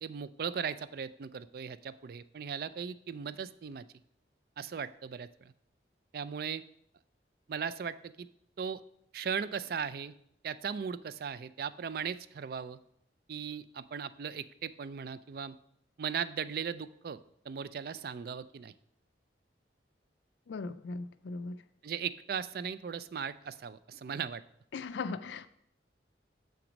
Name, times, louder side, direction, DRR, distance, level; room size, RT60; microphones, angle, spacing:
voice 1, 0.0-3.9 4.6-5.5 6.1-6.6 7.5-8.3 8.6-8.8 9.1-10.1 10.4-12.8 13.3-15.6 16.0-17.2 17.5-18.7 21.8-24.4, right 7 dB, 55° right, 16 dB, 0.4 m, -38 dB
voice 2, 20.5-21.6 24.7-25.5, left 4 dB, 85° left, 13 dB, 0.4 m, -38 dB
7.1 x 6.0 x 5.2 m, 0.71 s
head